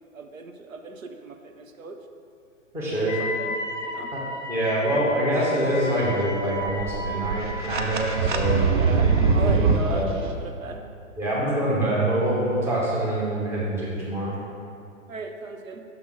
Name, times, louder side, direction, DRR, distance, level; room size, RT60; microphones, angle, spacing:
voice 1, 0.1-2.0 2.9-3.6 3.8-4.1 8.7-10.8 15.1-15.8, right 4 dB, 75° right, 4 dB, 0.7 m, -36 dB
voice 2, 2.7-3.2 4.1-4.2 4.5-10.1 11.2-14.4, right 1 dB, 5° right, -7 dB, 0.8 m, -25 dB
Wind instrument woodwind instrument, 3.1-9.5, left 1 dB, 35° left, 0.7 m, -34 dB
sound 1, 6.4-10.0, right 5 dB, 40° right, 0.5 m, -22 dB
6.0 x 3.5 x 6.0 m, 2.4 s
figure-of-eight pair, 125°, 41 cm